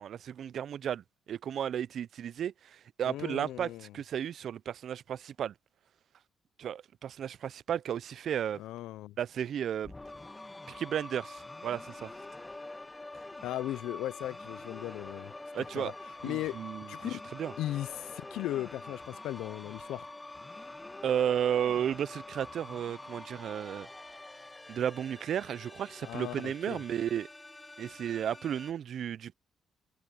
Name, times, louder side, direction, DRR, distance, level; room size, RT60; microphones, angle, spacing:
voice 1, 0.0-5.5 6.6-8.6 9.2-9.9 10.7-12.1 15.5-15.9 16.2-17.5 21.0-23.9 24.7-27.3 27.8-29.3, right 9 dB, 65° right, 0.4 m, -33 dB
voice 2, 3.0-4.0 8.6-9.2 13.4-15.9 16.2-16.6 16.9-17.2 17.6-20.1 26.0-26.8, left 14 dB, 90° left, 0.4 m, -37 dB
sound 1, 9.8-28.7, left 2 dB, 15° left, 1.4 m, -46 dB
cardioid pair, 90°, 0 cm